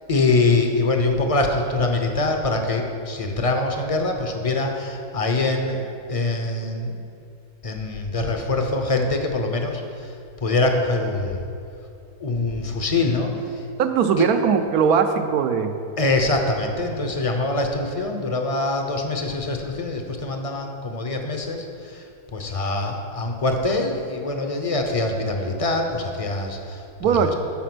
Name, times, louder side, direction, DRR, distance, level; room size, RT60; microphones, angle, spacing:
voice 1, 0.1-7.0 7.6-11.4 12.2-13.7 14.2-14.3 16.0-27.3, left 2 dB, 35° left, 4 dB, 0.6 m, -24 dB
voice 2, 13.8-15.8 27.0-27.3, right 7 dB, 75° right, 7 dB, 1.1 m, -20 dB
13.0 x 5.0 x 6.1 m, 2.6 s
omnidirectional pair, 1.6 m